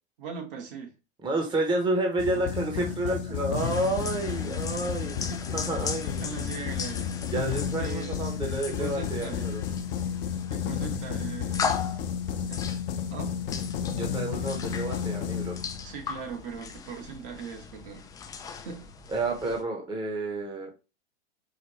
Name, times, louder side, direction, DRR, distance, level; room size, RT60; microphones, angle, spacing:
voice 1, 0.2-0.9 2.3-2.4 2.8-3.6 4.3-4.4 5.3-5.8 6.2-7.1 7.8-8.3 8.7-9.5 10.5-12.0 12.5-12.6 13.1-13.4 15.8-18.1 18.5-18.9, right 6 dB, 55° right, 1.4 m, -40 dB
voice 2, 1.2-6.3 7.3-9.6 13.9-15.6 19.1-20.7, right 2 dB, 15° right, 0.9 m, -30 dB
sound 1, 2.2-16.1, left 8 dB, 60° left, 0.8 m, -32 dB
sound 2, 3.6-19.6, left 6 dB, 10° left, 0.3 m, -38 dB
4.9 x 2.6 x 3.0 m
hypercardioid pair, 110°, 32 cm